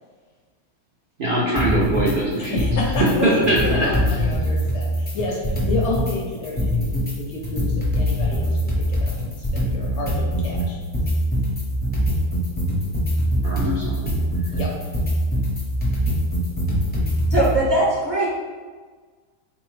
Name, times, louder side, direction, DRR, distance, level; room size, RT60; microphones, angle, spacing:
voice 1, 1.2-2.6 3.2-3.9 13.4-14.1 14.4-14.5, right 1 dB, 75° right, -5 dB, 0.5 m, -22 dB
sound 1, 1.6-2.1 2.4-3.1 3.4-6.1 6.4-17.6, equal, 15° left, 0.3 m, -23 dB
voice 2, 2.4-8.5 8.8-10.8 14.5-14.7, left 2 dB, 65° left, -2 dB, 0.7 m, -29 dB
voice 3, 17.3-18.3, right 1 dB, 35° right, -8 dB, 0.9 m, -20 dB
3.9 x 2.7 x 3.1 m, 1.5 s
omnidirectional pair, 1.6 m